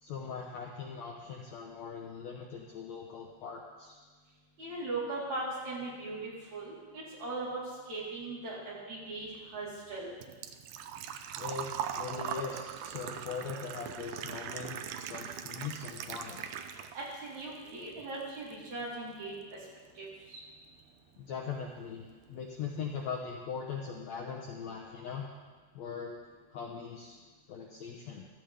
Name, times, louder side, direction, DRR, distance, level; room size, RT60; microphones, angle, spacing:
voice 1, 0.0-4.0 11.4-16.5 21.2-25.3 25.7-26.1 26.5-27.2 27.5-28.3, left 6 dB, 70° left, -1 dB, 1.8 m, -40 dB
voice 2, 4.6-7.6 7.9-10.1 16.9-19.4 20.0-20.4, right 2 dB, 55° right, -7 dB, 4.9 m, -39 dB
Engine / Trickle dribble / Fill (with liquid), 9.3-17.2 17.5-18.5 18.8-18.9 20.8-20.9 21.1-21.4 21.8-21.9 22.1-22.2, right 9 dB, 80° right, 1.9 m, -40 dB
15.0 x 14.0 x 3.4 m, 1.4 s
omnidirectional pair, 4.1 m